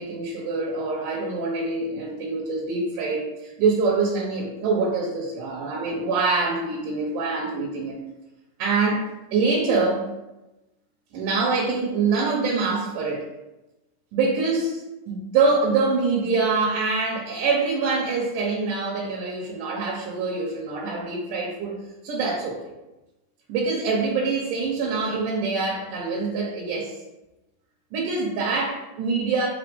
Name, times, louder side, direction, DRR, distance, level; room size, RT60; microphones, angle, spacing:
voice 1, 0.0-8.0 8.6-9.1 9.3-10.1 11.1-13.3 14.1-21.8 22.0-22.6 23.5-26.9 27.9-29.5, right 4 dB, 80° right, -3 dB, 2.6 m, -25 dB
5.0 x 3.9 x 5.2 m, 0.98 s
omnidirectional pair, 3.7 m